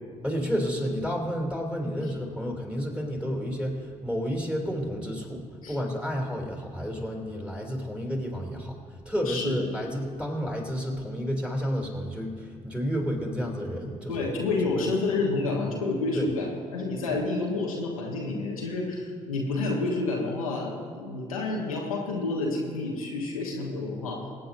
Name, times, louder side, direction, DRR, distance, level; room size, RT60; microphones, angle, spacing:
voice 1, 0.2-8.8 9.0-14.3 14.7-14.8 16.1-16.3 17.1-17.2, equal, 5° right, 0 dB, 3.2 m, -31 dB
voice 2, 9.3-9.6 14.1-24.2, left 3 dB, 80° left, -2 dB, 1.3 m, -29 dB
24.5 x 8.5 x 2.7 m, 2.1 s
figure-of-eight pair, 45°, 18 cm